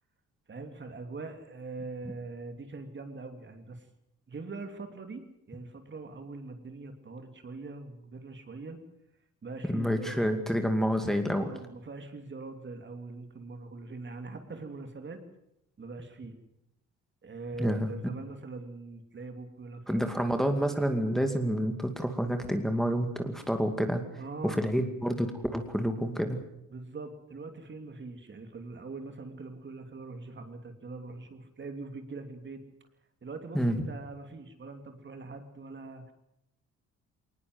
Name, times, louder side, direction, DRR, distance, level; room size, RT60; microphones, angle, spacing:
voice 1, 0.5-3.9 4.3-8.8 9.4-10.2 11.3-15.2 15.8-16.4 17.2-20.2 24.2-24.6 26.7-32.6 33.2-36.1, right 3 dB, 40° right, 6 dB, 3.0 m, -42 dB
voice 2, 9.7-11.5 17.6-17.9 19.9-24.0 24.4-26.4 33.5-33.8, equal, ahead, 5 dB, 2.4 m, -28 dB
21.0 x 19.5 x 8.0 m, 0.82 s
cardioid pair, 90°, 30 cm